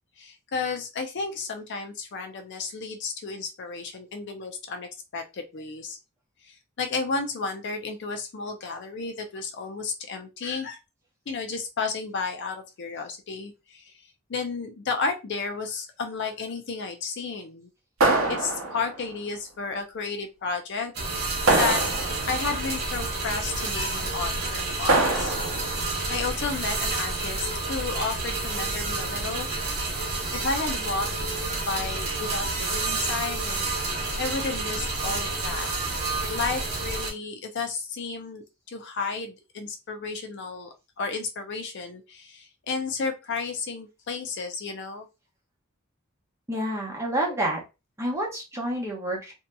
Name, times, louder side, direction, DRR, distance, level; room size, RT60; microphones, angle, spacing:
voice 1, 0.2-6.0 6.8-10.8 11.3-13.8 14.3-17.7 18.3-21.8 22.2-25.3 26.1-29.5 30.3-31.1 31.7-33.7 34.2-35.7 36.3-38.4 38.7-45.1, left 4 dB, 60° left, 5 dB, 0.5 m, -32 dB
sound 1, 18.0-19.1 21.5-22.4 24.9-25.8, right 2 dB, 85° right, 0.6 m, -24 dB
sound 2, 20.9-37.1, right 3 dB, 50° right, 0.9 m, -29 dB
voice 2, 46.5-47.6 48.0-49.3, right 1 dB, 15° right, -2 dB, 0.9 m, -28 dB
2.7 x 2.7 x 2.2 m, 0.26 s
head